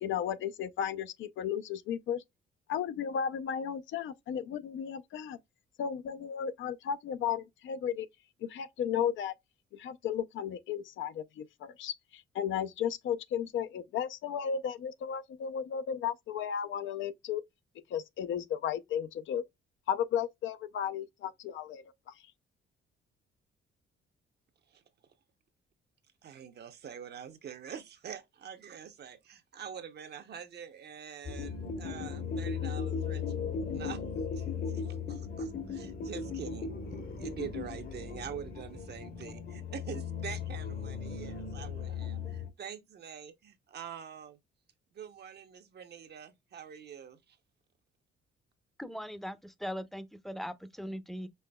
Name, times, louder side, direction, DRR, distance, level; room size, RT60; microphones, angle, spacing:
voice 1, 0.0-2.2 2.7-5.4 5.8-8.1 8.5-9.3 9.7-17.4 17.9-19.4 19.9-22.1, left 8 dB, 75° left, 0.5 m, -34 dB
voice 2, 26.2-33.4 33.7-34.0 34.3-44.4 44.9-47.4, right 8 dB, 55° right, 0.8 m, -45 dB
sound 1, 31.2-42.5, left 6 dB, 50° left, 0.9 m, -37 dB
voice 3, 48.8-51.3, equal, ahead, 0.6 m, -40 dB
5.6 x 2.9 x 2.2 m
cardioid pair, 90°, 20 cm